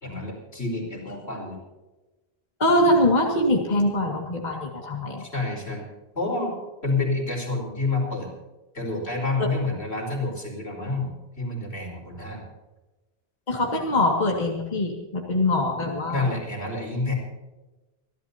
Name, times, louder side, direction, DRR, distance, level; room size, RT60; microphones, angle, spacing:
voice 1, 0.0-1.6 5.2-5.8 6.1-8.3 8.7-12.4 16.1-17.1, left 3 dB, 85° left, -1 dB, 4.9 m, -28 dB
voice 2, 2.6-5.3 9.4-9.5 13.5-16.3, left 1 dB, 45° left, -1 dB, 2.3 m, -23 dB
28.0 x 12.0 x 2.9 m, 1.1 s
omnidirectional pair, 1.1 m